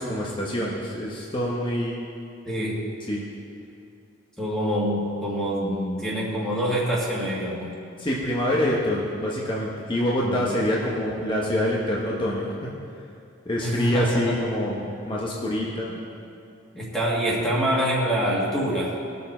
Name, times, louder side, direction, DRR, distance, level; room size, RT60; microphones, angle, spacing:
voice 1, 0.0-1.9 3.1-3.3 8.0-12.6 13.5-15.9, left 1 dB, 25° left, -4 dB, 1.0 m, -26 dB
voice 2, 2.4-2.8 4.4-7.7 10.2-10.5 13.6-14.3 14.8-14.9 16.7-19.0, equal, 5° left, -7 dB, 1.8 m, -25 dB
20.0 x 6.8 x 4.3 m, 2.5 s
head